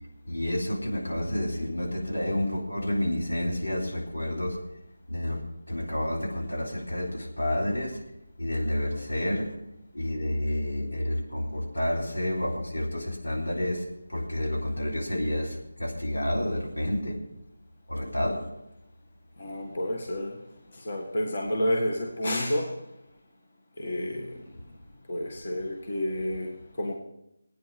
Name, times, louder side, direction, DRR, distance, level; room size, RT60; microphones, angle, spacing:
voice 1, 0.2-4.6 5.1-5.4 5.7-8.0 8.4-9.6 9.9-17.2 17.9-18.5, left 1 dB, 90° left, -1 dB, 3.9 m, -29 dB
voice 2, 19.4-20.4 20.7-22.8 23.8-24.4 25.1-27.0, left 1 dB, 40° left, 2 dB, 1.7 m, -30 dB
16.5 x 9.5 x 6.0 m, 0.84 s
figure-of-eight pair, 175°, 0 cm